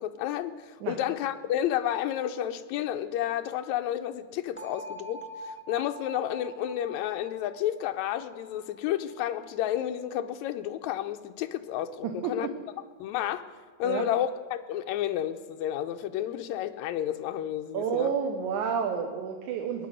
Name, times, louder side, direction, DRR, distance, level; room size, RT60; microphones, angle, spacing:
voice 1, 0.0-12.5 13.0-13.5 13.8-18.1, left 11 dB, 80° left, 2.0 m, -31 dB
sound 1, 4.6-10.4, equal, 5° left, 1.7 m, -45 dB
voice 2, 12.0-12.5 13.8-14.1 17.7-19.9, right 7 dB, 90° right, 2.5 m, -30 dB
21.5 x 9.5 x 6.4 m
omnidirectional pair, 3.4 m